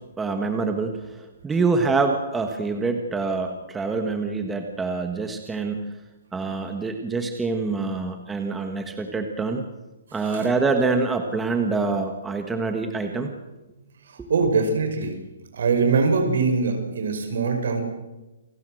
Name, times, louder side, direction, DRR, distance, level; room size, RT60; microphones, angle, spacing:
voice 1, 0.2-5.9 6.3-9.6 10.1-13.3 14.2-14.3, right 4 dB, 5° right, 5 dB, 1.3 m, -25 dB
voice 2, 10.1-10.5 14.0-15.1 15.5-17.8, right 4 dB, 60° right, 5 dB, 5.7 m, -23 dB
28.5 x 18.5 x 7.8 m, 1.1 s
hypercardioid pair, 170°, 0 cm